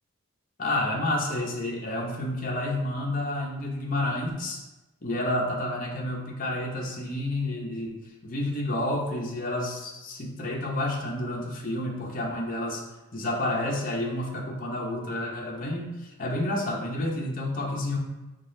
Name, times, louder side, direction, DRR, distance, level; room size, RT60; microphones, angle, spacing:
voice 1, 0.6-4.6 5.0-12.9 13.1-18.0, left 1 dB, 40° left, -1 dB, 0.6 m, -30 dB
4.6 x 3.8 x 2.6 m, 1.0 s
head